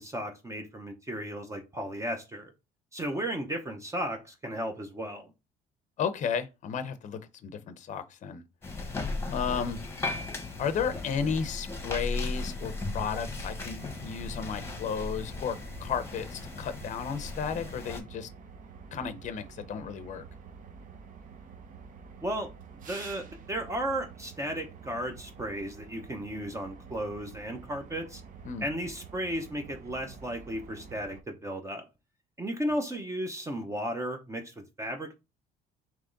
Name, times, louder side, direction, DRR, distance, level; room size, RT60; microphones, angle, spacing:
voice 1, 0.0-2.5 2.9-5.3 22.2-22.5 22.9-28.2 28.6-31.8 32.4-35.1, right 1 dB, 20° right, 0.7 m, -34 dB
voice 2, 6.0-8.4 9.3-9.8 10.6-18.3 18.9-20.2 28.4-28.7, left 6 dB, 45° left, 0.6 m, -33 dB
sound 1, 8.6-18.0, left 3 dB, 15° left, 1.0 m, -36 dB
sound 2, 12.6-31.2, right 6 dB, 50° right, 0.7 m, -48 dB
3.5 x 3.0 x 3.8 m
cardioid pair, 110°, 17 cm